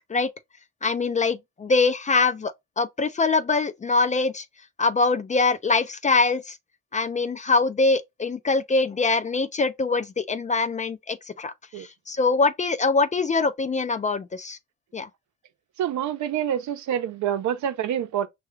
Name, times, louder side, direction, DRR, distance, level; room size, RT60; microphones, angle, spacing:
voice 1, 0.8-4.4 4.8-6.6 6.9-11.5 11.8-14.6 14.9-15.1, left 3 dB, 25° left, 0.4 m, -23 dB
voice 2, 15.8-18.3, right 10 dB, 70° right, 0.7 m, -27 dB
5.6 x 2.4 x 3.1 m
cardioid pair, 90°, 30 cm